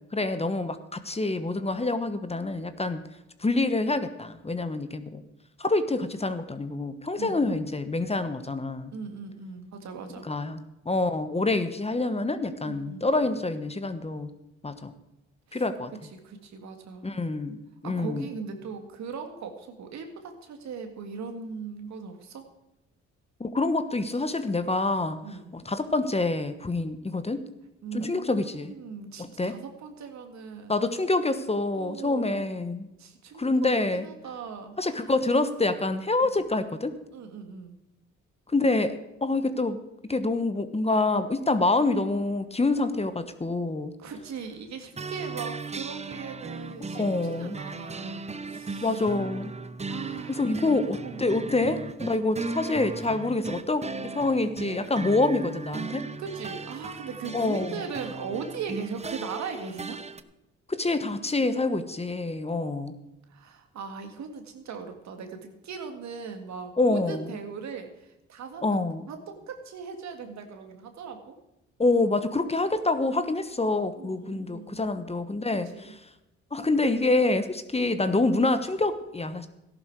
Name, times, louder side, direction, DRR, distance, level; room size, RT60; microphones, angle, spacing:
voice 1, 0.0-3.1 3.4-5.2 5.6-8.9 10.3-14.3 14.6-14.9 15.5-15.9 17.0-18.3 23.4-25.2 25.5-27.4 27.9-28.7 29.2-29.5 30.7-32.9 33.4-34.1 34.8-36.9 38.5-43.9 46.9-47.6 48.8-49.5 50.4-56.1 57.3-57.7 60.7-62.9 66.8-67.2 68.6-69.0 71.8-75.7 76.5-79.5, left 2 dB, 20° left, 10 dB, 1.2 m, -26 dB
voice 2, 7.2-7.7 8.9-10.3 12.6-13.1 15.5-15.6 16.2-17.1 17.8-22.5 25.2-25.5 27.8-30.7 31.7-32.6 33.0-35.1 36.4-36.5 37.1-37.8 44.0-49.1 49.9-50.7 51.0-51.5 56.2-60.0 63.3-68.8 69.1-71.4 74.0-74.8 75.6-75.9, right 5 dB, 70° right, 6 dB, 2.0 m, -39 dB
sound 1, 44.9-60.2, right 4 dB, 20° right, 0.8 m, -37 dB
14.0 x 11.5 x 4.8 m, 0.92 s
supercardioid pair, 60°, 29 cm